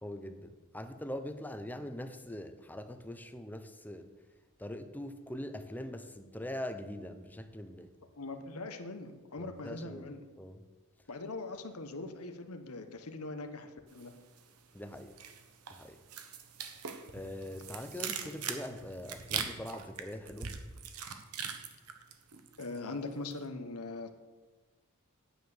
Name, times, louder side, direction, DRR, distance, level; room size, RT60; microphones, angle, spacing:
voice 1, 0.0-4.1 4.6-7.9 9.4-10.1 10.4-10.6 14.7-15.2 15.7-16.0 17.1-20.6, left 1 dB, 10° left, 8 dB, 0.7 m, -42 dB
voice 2, 8.2-10.2 11.1-14.1 22.6-24.1, left 2 dB, 75° left, 7 dB, 1.2 m, -41 dB
sound 1, 14.0-14.6 14.9-22.8 23.1-23.4, right 7 dB, 75° right, 1.2 m, -41 dB
9.3 x 9.2 x 6.6 m, 1.3 s
head